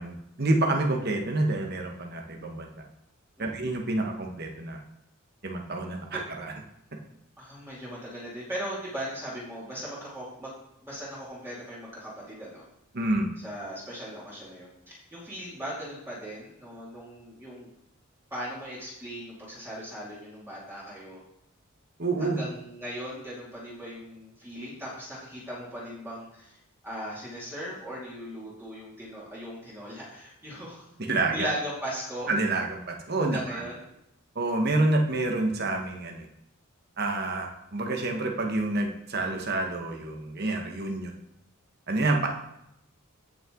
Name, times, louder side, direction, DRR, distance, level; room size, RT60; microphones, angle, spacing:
voice 1, 0.0-2.7 3.4-4.8 5.4-6.5 12.9-13.3 22.0-22.4 31.0-31.5 32.3-33.6 34.3-36.3 37.0-41.1 41.9-42.3, right 2 dB, 45° right, 2 dB, 1.4 m, -28 dB
voice 2, 7.4-10.5 10.8-12.7 13.4-17.7 18.3-21.2 22.2-26.6 26.8-32.3 33.2-33.8, equal, 10° right, -8 dB, 2.6 m, -38 dB
15.5 x 5.8 x 3.8 m, 0.80 s
head